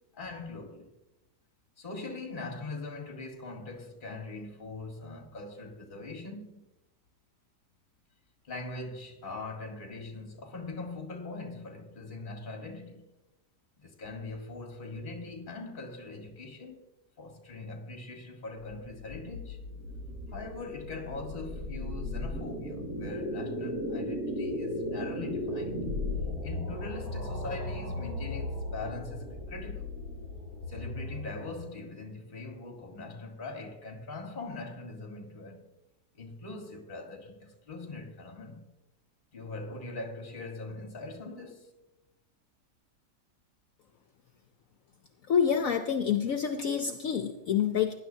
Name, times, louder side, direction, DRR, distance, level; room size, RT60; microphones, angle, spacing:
voice 1, 0.1-0.9 1.8-6.7 8.4-13.0 13.8-16.8 17.2-19.6 20.3-25.8 26.4-30.0 30.7-35.6 36.2-38.6 39.3-41.7, left 3 dB, 30° left, 1.7 m, -41 dB
sound 1, 18.6-31.8, left 1 dB, 60° right, 4.9 m, -36 dB
voice 2, 45.3-47.9, left 8 dB, 65° left, 1.0 m, -27 dB
18.5 x 10.5 x 2.7 m
omnidirectional pair, 1.8 m